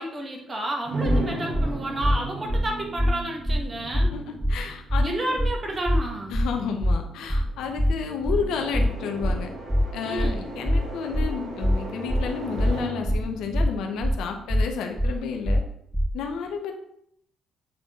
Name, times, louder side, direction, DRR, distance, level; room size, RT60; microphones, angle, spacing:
voice 1, 0.0-4.1 5.0-6.4 10.0-10.5, right 1 dB, 30° right, 1 dB, 1.7 m, -31 dB
sound 1, 0.8-14.7, right 2 dB, 75° right, 2.9 m, -37 dB
sound 2, 1.1-1.2 1.5-1.7 2.0-2.2 2.5-2.7 3.0-3.1 3.5-3.6 3.9-4.1 4.4-4.6 4.9-5.1 5.4-5.5 5.9-6.0 6.3-6.5 6.8-7.0 7.3-7.5 7.8-7.9 8.3-8.4 8.7-8.9 9.2-9.4 9.7-9.9 10.2-10.3 10.7-10.8 11.1-11.3 11.6-11.8 12.1-12.3 12.6-12.7 13.1-13.2 13.5-13.7 14.0-14.2 14.5-14.7 15.0-15.1 15.5-15.6 15.9-16.1, equal, ahead, 0.4 m, -22 dB
voice 2, 4.5-5.4 6.3-9.5 9.9-15.6 16.1-16.7, left 6 dB, 90° left, 4 dB, 0.9 m, -31 dB
8.4 x 3.8 x 3.8 m, 0.71 s
cardioid pair, 100°, 0 cm